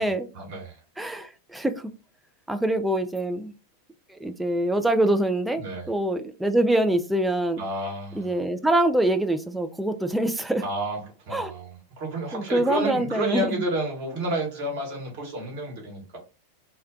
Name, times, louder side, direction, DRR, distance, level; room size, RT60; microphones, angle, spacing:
voice 1, 0.0-0.8 5.6-5.9 7.6-8.4 10.6-16.2, right 1 dB, 50° right, 1.2 m, -31 dB
voice 2, 1.0-1.9 2.5-3.5 4.2-5.6 5.9-7.6 8.2-10.6 11.3-11.5 12.3-13.5, right 1 dB, 5° right, 0.3 m, -24 dB
2.3 x 2.2 x 3.6 m
figure-of-eight pair, 90°, 0 cm